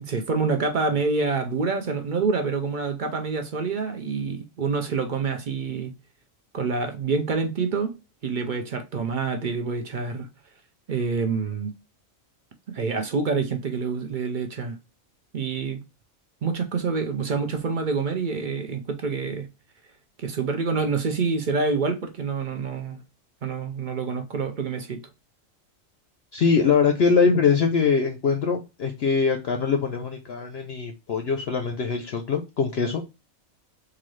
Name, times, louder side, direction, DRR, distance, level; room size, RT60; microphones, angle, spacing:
voice 1, 0.0-5.9 6.5-7.9 8.2-10.3 10.9-11.7 12.7-14.8 15.3-15.8 16.4-19.5 20.2-23.0 23.4-25.0, right 4 dB, 55° right, 0.5 m, -27 dB
voice 2, 26.3-33.0, left 5 dB, 60° left, 0.7 m, -22 dB
3.8 x 2.5 x 3.0 m
omnidirectional pair, 1.4 m